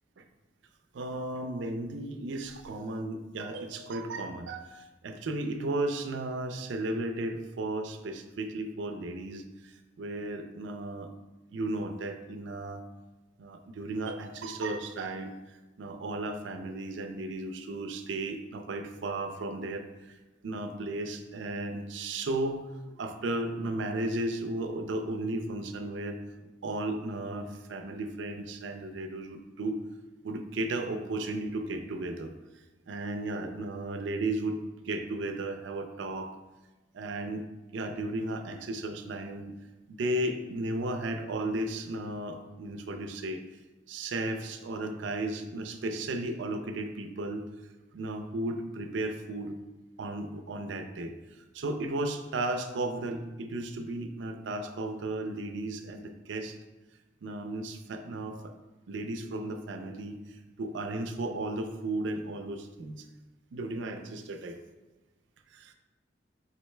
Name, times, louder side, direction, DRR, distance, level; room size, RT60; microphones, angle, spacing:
voice 1, 0.9-11.1 11.5-12.8 13.4-20.2 20.4-26.2 26.6-29.8 30.2-32.3 32.9-34.6 34.8-36.3 36.9-37.4 37.7-39.6 39.9-43.4 43.9-47.4 47.9-49.5 50.0-51.1 51.5-56.6 57.2-58.5 58.9-63.1 63.5-64.6 65.5-65.7, right 2 dB, 70° right, 6 dB, 0.4 m, -34 dB
5.0 x 3.2 x 3.2 m, 1.1 s
head